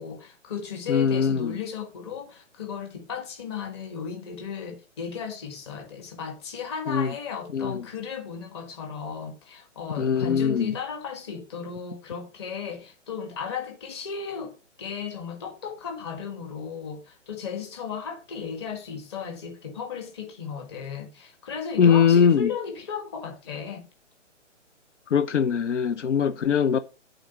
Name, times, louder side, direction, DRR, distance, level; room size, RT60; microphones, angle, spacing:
voice 1, 0.0-23.9, left 6 dB, 20° left, 1.5 m, -35 dB
voice 2, 0.9-1.6 6.9-7.1 7.5-7.9 10.0-10.7 21.8-22.5 25.1-26.8, left 7 dB, 70° left, 0.8 m, -21 dB
8.2 x 3.9 x 6.7 m
hypercardioid pair, 170°, 37 cm